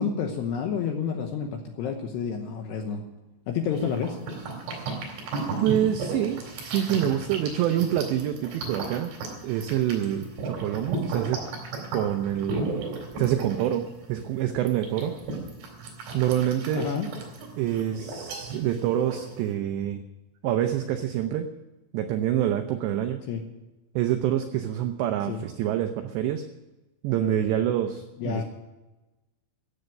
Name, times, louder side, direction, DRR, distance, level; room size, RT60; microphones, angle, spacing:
voice 1, 0.0-3.0 3.5-4.2 16.7-17.1 23.2-23.4 25.3-25.4 28.2-28.4, left 6 dB, 75° left, 4 dB, 2.5 m, -29 dB
sound 1, 3.7-19.5, right 3 dB, 70° right, 6.2 m, -35 dB
voice 2, 5.6-9.1 9.4-11.4 11.9-12.9 13.2-15.2 16.1-16.9 17.6-20.0 20.4-21.5 21.9-23.2 24.0-26.5 27.0-28.4, right 11 dB, 85° right, 6 dB, 2.5 m, -26 dB
15.0 x 8.0 x 9.1 m, 1.1 s
omnidirectional pair, 5.9 m